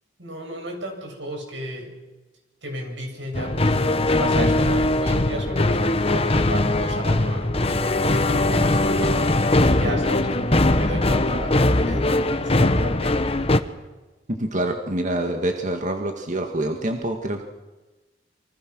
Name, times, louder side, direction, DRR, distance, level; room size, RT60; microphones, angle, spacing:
voice 1, 0.2-1.9 2.6-13.5, right 1 dB, 85° right, 2 dB, 7.9 m, -33 dB
sound 1, 3.3-13.6, left 2 dB, 35° left, 1.2 m, -21 dB
voice 2, 14.3-17.4, right 1 dB, 45° right, 4 dB, 2.0 m, -26 dB
28.5 x 24.5 x 6.3 m, 1.2 s
head